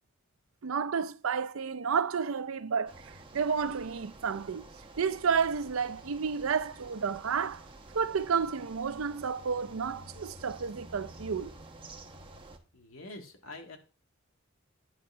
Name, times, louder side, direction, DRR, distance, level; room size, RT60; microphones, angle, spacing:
voice 1, 0.6-4.7 5.0-7.6 7.9-11.5, right 6 dB, 85° right, 0.5 m, -31 dB
sound 1, 2.9-12.6, right 2 dB, 25° right, 1.0 m, -50 dB
voice 2, 12.7-13.8, left 2 dB, 90° left, 2.0 m, -45 dB
10.5 x 3.8 x 5.5 m
head